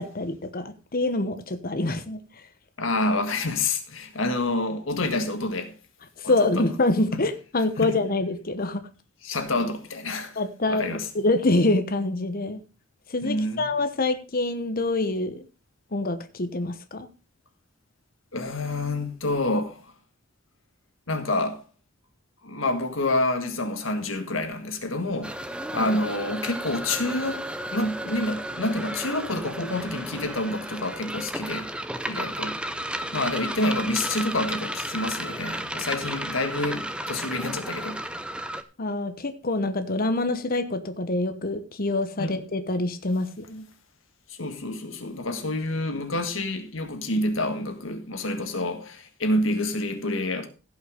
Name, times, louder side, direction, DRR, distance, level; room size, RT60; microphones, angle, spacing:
voice 1, 0.0-2.2 6.2-8.8 10.4-10.9 11.1-12.6 13.1-15.4 15.9-17.1 25.8-26.0 38.8-43.7, left 2 dB, 45° left, 1.1 m, -26 dB
voice 2, 2.8-5.7 6.2-6.7 7.1-7.2 7.8-7.9 9.2-10.4 10.7-11.1 13.2-13.7 18.3-19.9 21.1-21.6 22.4-25.4 25.7-31.7 32.1-32.6 33.1-38.0 42.2-42.3 44.3-50.5, left 2 dB, 70° left, 1.7 m, -28 dB
sound 1, 25.2-38.6, right 1 dB, 5° right, 0.6 m, -33 dB
15.5 x 5.7 x 5.0 m
head